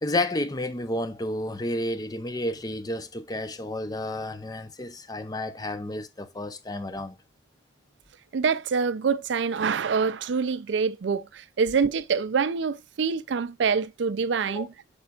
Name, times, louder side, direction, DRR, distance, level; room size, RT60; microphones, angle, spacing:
voice 1, 0.0-7.1 14.5-14.7, left 1 dB, 20° left, 0.6 m, -31 dB
voice 2, 8.3-14.7, right 5 dB, 75° right, 0.4 m, -26 dB
8.7 x 5.2 x 2.4 m
head